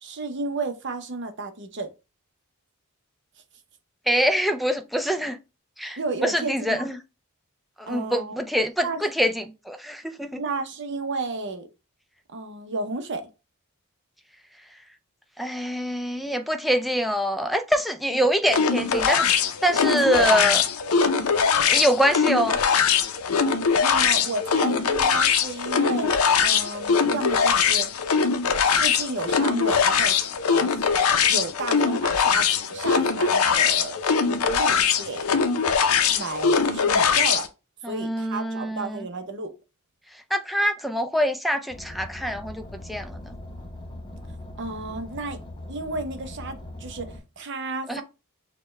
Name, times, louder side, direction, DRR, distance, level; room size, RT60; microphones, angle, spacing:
voice 1, 0.0-1.9 6.0-6.9 7.9-8.4 8.8-9.0 10.4-11.7 12.3-13.3 19.6-20.6 23.8-26.1 26.4-27.9 28.7-30.7 31.3-34.0 34.5-35.3 36.1-37.5 37.8-39.5 44.3-45.4 45.7-48.0, right 3 dB, 55° right, 0.7 m, -32 dB
voice 2, 4.1-5.4 5.8-7.0 7.8-10.4 15.4-19.3 19.6-20.6 21.6-22.6 37.8-39.1 40.3-43.3 47.9-48.0, equal, ahead, 0.3 m, -25 dB
sound 1, 18.5-37.5, left 6 dB, 70° left, 0.5 m, -22 dB
Car, 41.7-47.2, left 1 dB, 20° left, 0.9 m, -40 dB
6.5 x 2.2 x 3.2 m
head